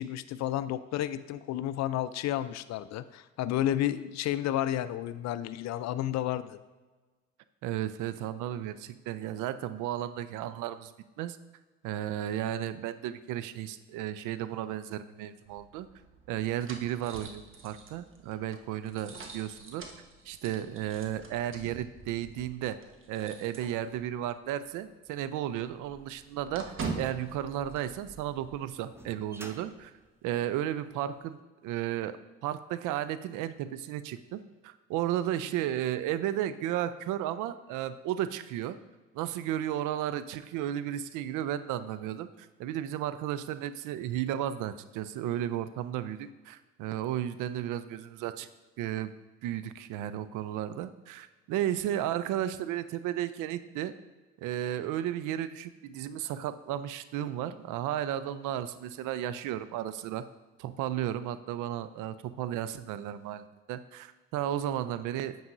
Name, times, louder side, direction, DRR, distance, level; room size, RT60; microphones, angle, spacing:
voice 1, 0.0-6.6, left 12 dB, 50° left, 14 dB, 0.5 m, -31 dB
voice 2, 7.6-10.9 11.2-11.4 11.8-15.9 16.3-19.8 20.3-22.8 23.1-29.9 30.2-32.2 32.4-38.8 39.1-48.5 48.8-49.1 49.4-53.9 54.4-60.2 60.6-65.4, right 11 dB, 60° right, 14 dB, 0.6 m, -34 dB
sound 1, 15.4-24.3 24.6-24.7 25.1-28.5, right 4 dB, 35° right, 1.2 m, -44 dB
sound 2, 25.7-31.1, right 1 dB, 5° right, 0.7 m, -53 dB
9.4 x 7.0 x 2.6 m, 1.3 s
hypercardioid pair, 60°, 35 cm